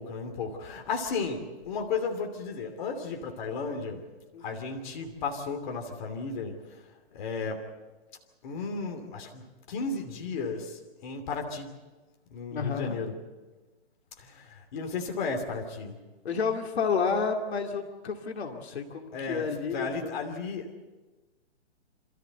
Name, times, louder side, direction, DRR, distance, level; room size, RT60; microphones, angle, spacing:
voice 1, 0.0-4.0 4.4-6.8 7.1-7.7 8.4-11.7 12.3-13.2 14.2-16.0 19.1-20.8, left 4 dB, 45° left, 3 dB, 2.9 m, -34 dB
voice 2, 12.5-13.0 16.2-20.2, left 5 dB, 70° left, 4 dB, 2.5 m, -30 dB
28.5 x 14.0 x 8.0 m, 1.2 s
hypercardioid pair, 150°, 33 cm